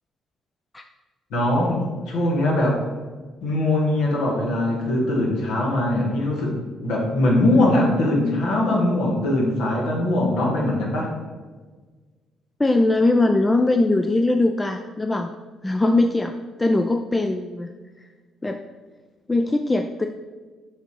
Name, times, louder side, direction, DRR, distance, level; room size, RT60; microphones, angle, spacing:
voice 1, 1.3-2.8 3.4-6.5 6.8-11.1, left 1 dB, 75° left, -1 dB, 1.5 m, -21 dB
voice 2, 12.6-15.3 15.6-17.7 18.0-18.1 18.4-18.6 19.3-20.1, left 2 dB, 20° left, 6 dB, 0.4 m, -21 dB
6.4 x 3.5 x 4.5 m, 1.4 s
hypercardioid pair, 55°, 0 cm